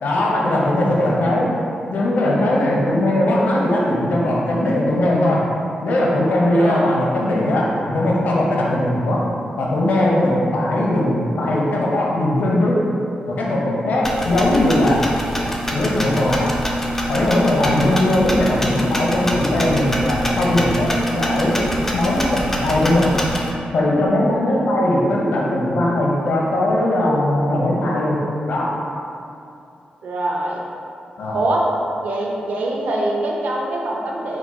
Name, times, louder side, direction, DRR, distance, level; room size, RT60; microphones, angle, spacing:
voice 1, 0.0-1.5 1.9-5.4 5.8-9.2 9.6-12.8 13.3-15.0 15.7-16.5 17.1-21.6 21.9-23.1 23.7-28.2 28.5-28.7 31.2-31.4, left 1 dB, 65° left, -3 dB, 0.7 m, -19 dB
voice 2, 6.6-6.9 30.0-30.6 31.3-31.7 32.0-34.4, right 1 dB, 65° right, -3 dB, 0.6 m, -23 dB
sound 1, 14.0-23.5, equal, 10° left, 0.4 m, -24 dB
4.8 x 2.1 x 4.2 m, 2.6 s
wide cardioid pair, 175°, 3 cm